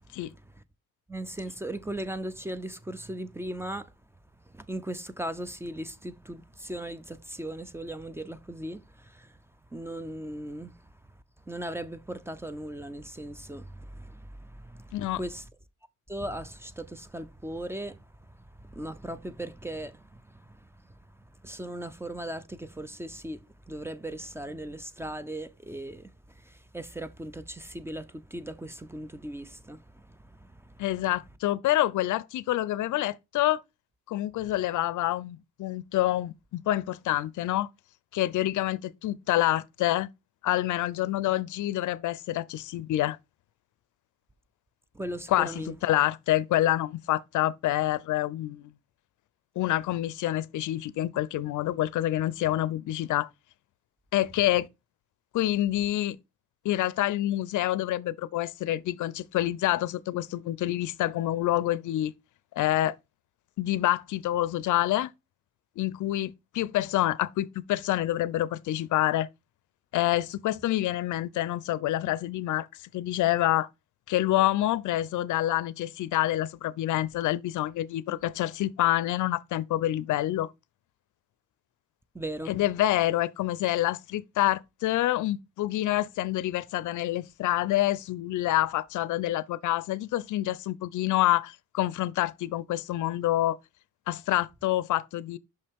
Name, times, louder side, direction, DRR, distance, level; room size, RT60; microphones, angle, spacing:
voice 1, 1.1-3.9 4.5-9.4 9.7-10.9 11.5-15.5 16.1-21.0 21.4-30.8 44.9-45.8 82.1-82.6, right 1 dB, 10° right, 0.3 m, -38 dB
voice 2, 30.8-33.6 34.1-37.7 38.1-40.1 40.4-43.2 45.3-48.7 49.6-53.3 54.1-54.7 55.3-56.2 56.6-62.1 62.6-63.0 63.6-65.1 65.8-69.3 69.9-72.7 72.9-73.7 74.1-80.5 82.5-93.6 94.1-95.4, left 14 dB, 65° left, 0.5 m, -27 dB
5.8 x 5.4 x 3.5 m
cardioid pair, 130°, 32 cm